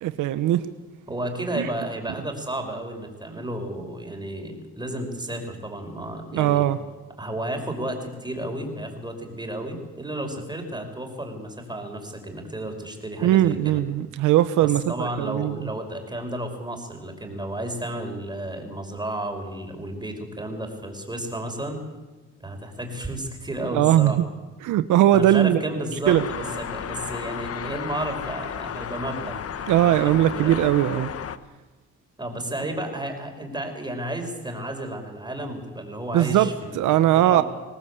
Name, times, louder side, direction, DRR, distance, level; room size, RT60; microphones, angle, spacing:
voice 1, 0.0-0.6 1.6-1.7 6.3-6.8 13.2-15.6 23.7-24.2 24.6-25.6 26.1-26.2 29.7-31.1 36.1-36.5 36.8-37.4, right 13 dB, 90° right, 12 dB, 0.9 m, -19 dB
voice 2, 1.1-6.7 7.2-13.8 14.6-21.8 22.4-24.3 25.1-29.4 29.7-30.6 32.2-37.4, right 1 dB, 15° right, 4 dB, 5.6 m, -32 dB
sound 1, 26.0-31.4, left 8 dB, 50° left, 1.2 m, -33 dB
23.5 x 18.5 x 8.4 m, 1.2 s
cardioid pair, 90°, 30 cm